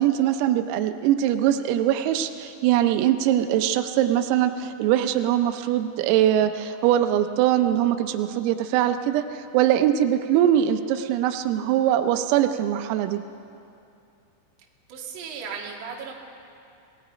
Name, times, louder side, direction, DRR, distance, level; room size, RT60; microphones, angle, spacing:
voice 1, 0.0-13.2, right 11 dB, 85° right, 8 dB, 3.4 m, -22 dB
voice 2, 14.9-16.1, right 6 dB, 50° right, -1 dB, 2.7 m, -35 dB
27.0 x 19.5 x 5.0 m, 2.6 s
omnidirectional pair, 5.9 m